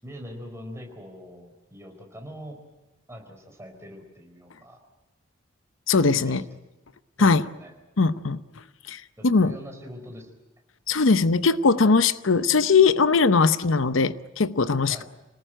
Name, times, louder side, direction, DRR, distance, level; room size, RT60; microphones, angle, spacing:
voice 1, 0.0-2.6 3.1-4.8 6.1-6.5 7.2-7.7 9.2-10.3 14.9-15.0, equal, 15° right, 4.5 m, -42 dB
voice 2, 5.9-6.4 7.2-7.4 8.0-8.4 8.9-9.5 10.9-15.0, left 4 dB, 70° left, 0.8 m, -20 dB
27.0 x 19.0 x 9.0 m
head